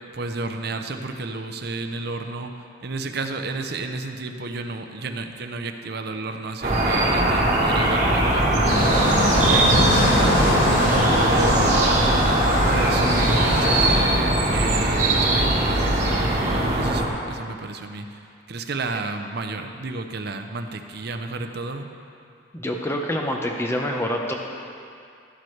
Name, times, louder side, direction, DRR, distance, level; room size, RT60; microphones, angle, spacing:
voice 1, 0.1-2.5 2.8-8.8 9.4-11.0 11.3-12.0 12.7-18.2 18.5-21.9, right 3 dB, 55° right, 6 dB, 0.7 m, -31 dB
sound 1, 6.6-17.1, right 1 dB, 40° right, 1.5 m, -20 dB
sound 2, 8.6-14.0, left 1 dB, 75° left, 1.7 m, -23 dB
voice 2, 22.5-24.3, left 1 dB, 15° left, 1 dB, 0.8 m, -26 dB
12.5 x 12.0 x 3.2 m, 2.4 s
head